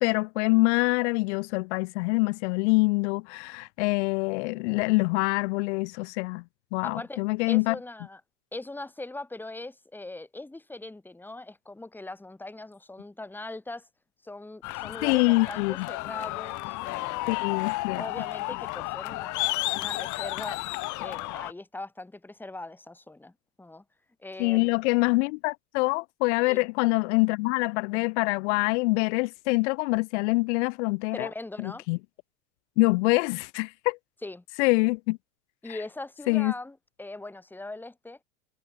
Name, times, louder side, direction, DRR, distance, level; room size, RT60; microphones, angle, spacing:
voice 1, 0.0-6.4 6.7-7.8 15.0-15.9 17.3-18.0 24.4-31.3 31.6-32.0 32.8-34.0 34.6-35.2 35.7-35.8 36.3-36.5, left 27 dB, 70° left, 0.9 m, -25 dB
voice 2, 6.8-7.2 7.5-8.2 8.5-13.9 14.2-17.4 17.9-20.6 21.0-23.3 23.6-23.8 24.2-24.7 26.4-26.6 31.1-31.9 34.2-34.4 35.6-38.2, left 2 dB, 5° left, 1.4 m, -40 dB
sound 1, 14.6-21.5, left 21 dB, 55° left, 1.8 m, -32 dB
supercardioid pair, 105°, 36 cm